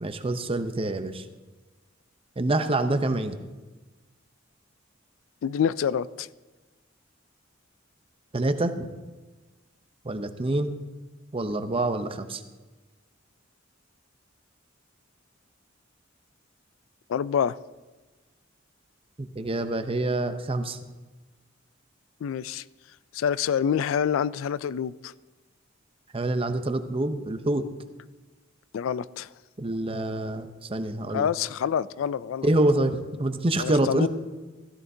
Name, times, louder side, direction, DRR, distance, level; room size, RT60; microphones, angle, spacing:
voice 1, 0.0-1.2 2.4-3.4 8.3-8.9 10.0-10.8 11.3-12.4 19.2-20.8 26.1-27.6 29.6-31.3 32.4-34.1, right 2 dB, 30° right, 9 dB, 0.7 m, -26 dB
voice 2, 5.4-6.3 17.1-17.6 22.2-22.6 23.1-25.1 28.7-29.3 31.1-32.5 33.6-34.1, left 8 dB, 75° left, 18 dB, 0.3 m, -27 dB
15.5 x 13.5 x 2.7 m, 1.2 s
head